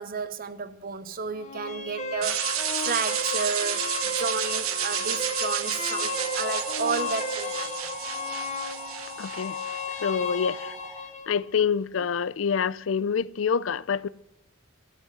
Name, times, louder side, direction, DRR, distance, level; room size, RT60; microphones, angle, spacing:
voice 1, 0.0-7.9, right 5 dB, 45° right, 0.7 m, -32 dB
sound 1, 1.3-11.3, left 4 dB, 35° left, 1.7 m, -34 dB
sound 2, 2.2-10.2, right 10 dB, 85° right, 1.2 m, -31 dB
sound 3, 6.0-11.0, right 2 dB, 20° right, 1.8 m, -46 dB
voice 2, 9.2-9.6 10.0-10.8 11.3-14.1, left 6 dB, 65° left, 0.4 m, -26 dB
14.5 x 8.1 x 7.3 m
head